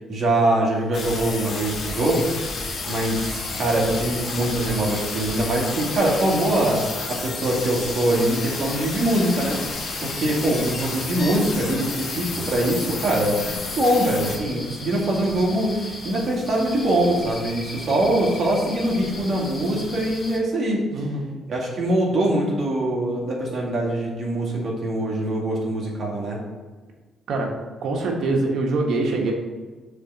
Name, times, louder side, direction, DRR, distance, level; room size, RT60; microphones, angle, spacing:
voice 1, 0.1-2.3 2.9-6.8 7.1-20.8 21.5-26.4, right 1 dB, 50° right, -3 dB, 2.2 m, -23 dB
sound 1, 0.9-14.4, left 4 dB, 60° left, 1.3 m, -31 dB
sound 2, 2.0-20.4, left 2 dB, 40° left, 2.3 m, -38 dB
voice 2, 20.9-21.2 27.3-27.5 27.8-29.3, right 3 dB, 65° right, 0 dB, 1.5 m, -23 dB
6.5 x 3.8 x 6.1 m, 1.3 s
cardioid pair, 90°, 0 cm